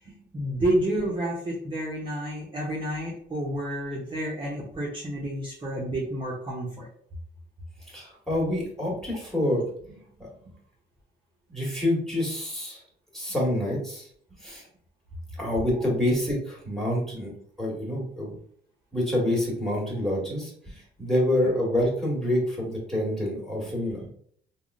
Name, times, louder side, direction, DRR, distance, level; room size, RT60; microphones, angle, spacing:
voice 1, 0.3-6.9, right 1 dB, 25° right, -5 dB, 0.7 m, -29 dB
voice 2, 7.9-9.7 10.2-10.3 11.5-12.8 13.1-14.1 14.4-14.6 15.4-17.3 17.6-18.3 18.9-24.1, left 1 dB, ahead, -3 dB, 1.5 m, -27 dB
3.5 x 2.2 x 2.5 m, 0.63 s
cardioid pair, 90°, 20 cm